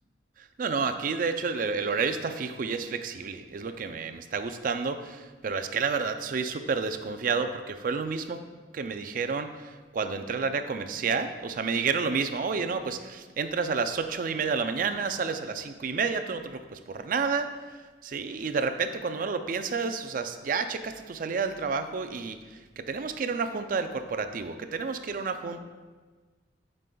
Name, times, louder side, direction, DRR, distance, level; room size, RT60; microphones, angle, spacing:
voice 1, 0.4-8.4 8.7-25.6, right 5 dB, 50° right, 9 dB, 0.4 m, -30 dB
10.5 x 5.3 x 2.3 m, 1.4 s
head